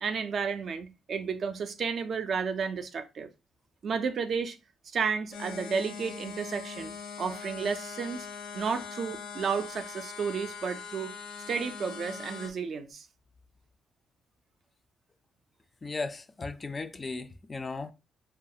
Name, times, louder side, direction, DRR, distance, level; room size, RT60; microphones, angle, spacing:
voice 1, 0.0-3.3 3.8-4.6 4.9-6.9 7.2-8.3 8.5-11.1 11.5-13.1, right 5 dB, 55° right, 0.4 m, -32 dB
sound 1, 5.3-12.5, left 6 dB, 75° left, 0.5 m, -42 dB
voice 2, 15.8-17.9, left 3 dB, 30° left, 0.3 m, -36 dB
2.3 x 2.2 x 2.7 m
cardioid pair, 90°, 0 cm